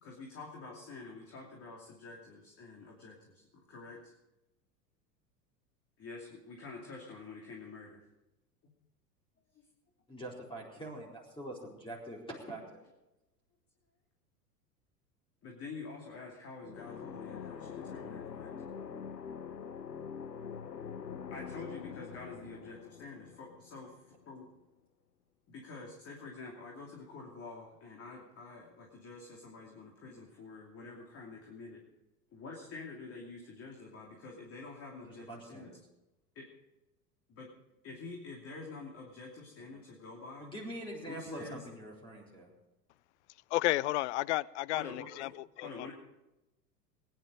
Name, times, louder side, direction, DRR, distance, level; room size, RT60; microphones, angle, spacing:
voice 1, 0.0-4.1 6.0-8.0 9.5-9.6 15.4-18.5 21.3-24.5 25.5-31.8 32.3-35.7 36.3-36.5 37.3-37.5 37.8-40.5 41.1-41.6 44.7-45.1 45.6-45.9, left 3 dB, 30° left, -1 dB, 2.9 m, -47 dB
voice 2, 10.1-12.8 35.0-35.8 39.7-39.8 40.4-42.5, right 1 dB, 10° left, -3 dB, 4.2 m, -44 dB
sound 1, 16.6-24.3, left 7 dB, 80° left, 1.0 m, -44 dB
voice 3, 43.5-45.3 45.6-45.9, left 17 dB, 45° left, 23 dB, 0.5 m, -32 dB
21.0 x 10.5 x 5.1 m, 0.97 s
figure-of-eight pair, 85°, 49 cm